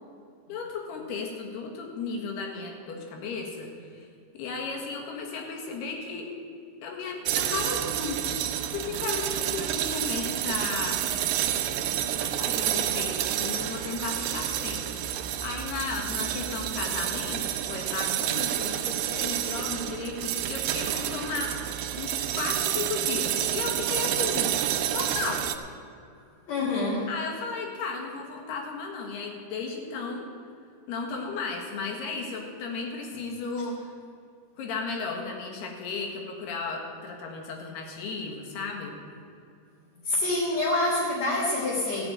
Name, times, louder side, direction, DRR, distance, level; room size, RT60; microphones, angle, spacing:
voice 1, 0.5-4.1 4.3-6.3 6.8-8.2 8.6-11.0 12.2-14.9 15.4-21.7 22.0-24.5 24.9-25.5 27.1-30.3 30.9-33.9 34.6-39.0, left 4 dB, 85° left, 1 dB, 3.7 m, -34 dB
sound 1, 7.2-25.6, right 11 dB, 80° right, 2.1 m, -29 dB
voice 2, 26.5-27.1 40.0-42.0, left 2 dB, 50° left, -5 dB, 2.5 m, -26 dB
14.0 x 7.1 x 8.8 m, 2.5 s
omnidirectional pair, 4.5 m